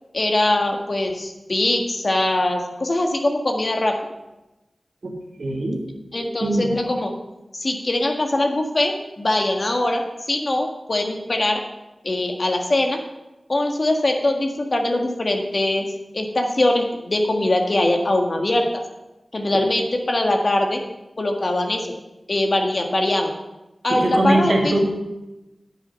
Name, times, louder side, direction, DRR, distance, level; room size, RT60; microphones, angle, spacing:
voice 1, 0.1-4.1 6.1-7.1 7.5-10.0 10.3-11.6 12.0-13.0 13.5-18.7 19.3-20.8 21.2-21.9 22.3-23.3 23.8-24.8, left 1 dB, 55° left, 3 dB, 1.7 m, -22 dB
voice 2, 5.4-5.8 6.4-6.7 24.0-24.8, right 1 dB, 80° right, 1 dB, 2.0 m, -21 dB
9.8 x 8.9 x 5.4 m, 1.0 s
cardioid pair, 45°, 0 cm